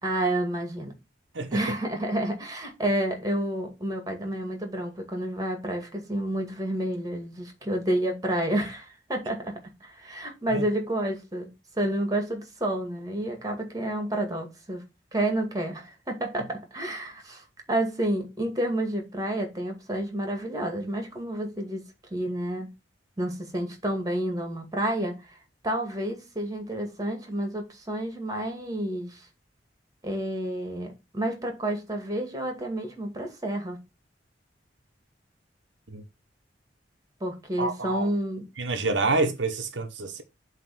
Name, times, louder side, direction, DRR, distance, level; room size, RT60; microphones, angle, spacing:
voice 1, 0.0-0.9 1.5-11.5 11.8-14.8 15.1-21.8 22.1-22.7 23.2-25.2 25.6-29.2 30.0-33.8 37.2-38.4, right 1 dB, 20° right, 2.1 m, -30 dB
voice 2, 37.6-38.1 38.6-40.2, right 3 dB, 85° right, 1.1 m, -27 dB
7.6 x 3.3 x 6.2 m
head